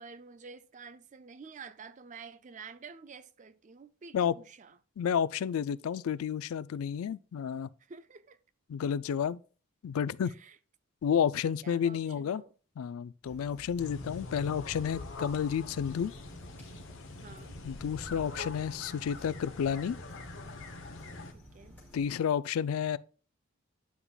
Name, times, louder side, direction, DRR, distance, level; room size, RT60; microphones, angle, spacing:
voice 1, 0.0-4.8 7.8-8.4 10.2-10.6 11.6-12.5 17.2-17.6 21.3-21.8, right 5 dB, 35° right, 0.4 m, -49 dB
voice 2, 5.0-7.7 8.7-9.4 9.8-10.3 11.0-12.4 12.8-16.1 17.6-20.0 21.9-23.0, left 8 dB, 80° left, 0.3 m, -31 dB
sound 1, 13.2-22.1, equal, 10° left, 3.1 m, -54 dB
sound 2, 13.8-21.3, left 2 dB, 60° left, 0.9 m, -44 dB
9.4 x 5.9 x 2.3 m
head